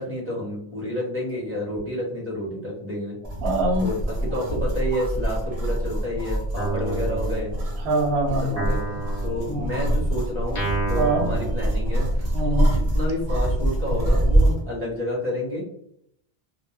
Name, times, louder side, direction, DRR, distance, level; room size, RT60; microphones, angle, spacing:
voice 1, 0.0-3.2 3.8-7.5 8.4-8.8 9.2-15.6, left 1 dB, 10° right, -5 dB, 1.2 m, -30 dB
sound 1, 3.2-14.6, right 1 dB, 40° right, 0.8 m, -25 dB
voice 2, 3.4-3.9 7.8-8.7 9.5-9.7 11.0-11.3 12.3-12.7, right 2 dB, 75° right, 2 dB, 0.9 m, -24 dB
Guitar, 6.6-8.1 8.6-12.4, right 3 dB, 40° left, 0.9 m, -32 dB
2.4 x 2.1 x 3.2 m, 0.72 s
omnidirectional pair, 1.1 m